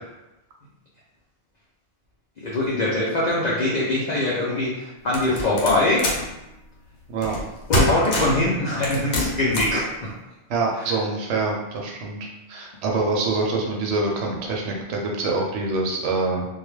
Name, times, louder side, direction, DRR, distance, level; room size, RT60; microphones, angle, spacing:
voice 1, 2.4-6.1 7.7-10.1, left 2 dB, 55° left, -6 dB, 0.5 m, -23 dB
sound 1, 5.1-6.3 7.2-7.5 7.7-8.4 8.8-9.8, left 1 dB, 80° left, 0.9 m, -24 dB
voice 2, 10.5-16.5, right 3 dB, 75° right, -1 dB, 0.9 m, -25 dB
2.2 x 2.2 x 3.1 m, 0.95 s
omnidirectional pair, 1.2 m